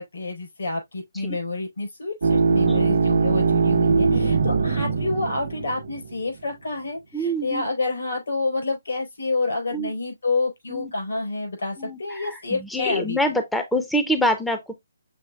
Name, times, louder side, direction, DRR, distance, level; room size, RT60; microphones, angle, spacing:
voice 1, 0.0-13.2, left 3 dB, 75° left, 4.0 m, -28 dB
sound 1, 2.2-6.2, right 4 dB, 65° right, 0.9 m, -21 dB
voice 2, 2.7-3.0 7.1-7.6 9.7-9.9 10.7-10.9 11.8-14.7, equal, 5° left, 0.4 m, -26 dB
6.2 x 3.7 x 2.3 m
hypercardioid pair, 165°, 0 cm